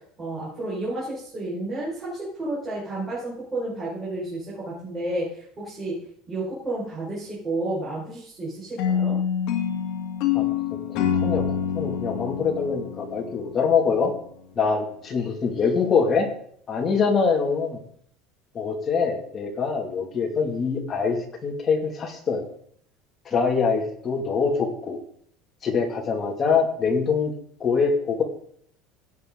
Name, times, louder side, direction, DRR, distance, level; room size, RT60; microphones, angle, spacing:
voice 1, 0.2-6.0 6.3-9.2, right 2 dB, 20° right, -9 dB, 5.2 m, -31 dB
sound 1, 8.8-13.9, left 8 dB, 55° left, 2.3 m, -26 dB
voice 2, 11.7-14.1 14.6-16.3 16.7-17.8 18.5-21.2 21.4-22.5 23.3-25.0 25.6-27.3 27.6-28.2, left 5 dB, 25° left, 1 dB, 2.3 m, -24 dB
16.5 x 8.6 x 3.9 m, 0.63 s
cardioid pair, 165°, 0 cm